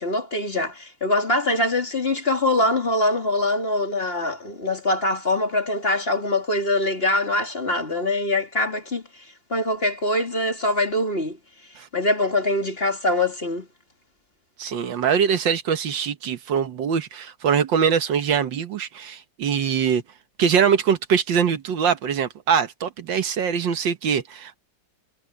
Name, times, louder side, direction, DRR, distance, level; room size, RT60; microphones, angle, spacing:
voice 1, 0.0-9.0 9.5-11.4 11.9-13.7, left 2 dB, 30° left, 3.4 m, -23 dB
voice 2, 14.6-20.0 20.4-24.6, right 7 dB, 75° right, 1.9 m, -23 dB
omnidirectional pair, 2.0 m